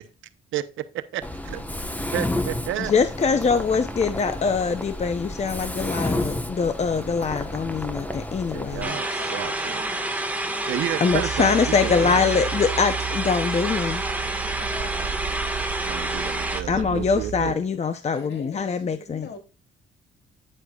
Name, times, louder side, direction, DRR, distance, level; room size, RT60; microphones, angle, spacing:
voice 1, 0.5-1.6 2.1-2.9 8.5-9.9 10.7-12.3 15.8-17.6, right 12 dB, 80° right, 0.9 m, -31 dB
Mechanisms, 1.2-8.8, left 1 dB, 10° left, 1.1 m, -31 dB
voice 2, 2.9-9.0 11.0-14.0 16.7-19.3, left 5 dB, 35° left, 0.7 m, -23 dB
sound 1, 8.8-16.6, right 1 dB, 10° right, 1.6 m, -28 dB
voice 3, 9.2-10.0 14.6-15.1 18.1-19.4, left 5 dB, 65° left, 3.0 m, -42 dB
sound 2, 11.1-17.5, right 9 dB, 55° right, 0.6 m, -34 dB
9.7 x 7.9 x 2.4 m
cardioid pair, 90°, 20 cm